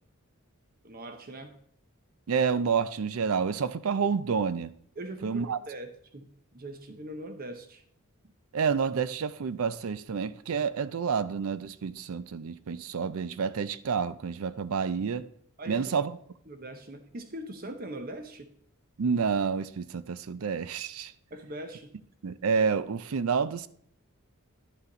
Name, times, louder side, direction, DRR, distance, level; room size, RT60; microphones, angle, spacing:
voice 1, 0.8-1.6 5.0-7.8 15.6-15.9 16.5-18.5 21.3-21.9, right 1 dB, 40° right, 0.8 m, -41 dB
voice 2, 2.3-4.7 5.2-5.6 8.5-15.3 15.7-16.2 19.0-21.1 22.2-23.7, right 6 dB, 70° right, 0.5 m, -29 dB
11.5 x 5.7 x 3.9 m
head